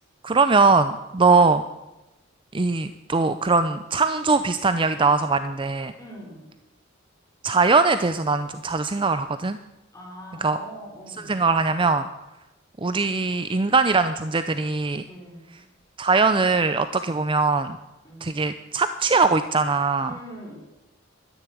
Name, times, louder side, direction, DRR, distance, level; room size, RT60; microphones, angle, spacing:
voice 1, 0.2-1.6 2.5-5.9 7.4-9.6 10.4-10.6 11.3-12.1 12.8-15.0 16.0-17.8 18.2-20.1, right 4 dB, 25° right, 11 dB, 0.5 m, -21 dB
voice 2, 6.0-6.5 9.9-11.4 15.1-15.6 18.0-18.5 20.0-20.6, equal, 15° left, -3 dB, 5.6 m, -42 dB
13.0 x 10.0 x 9.9 m, 0.98 s
head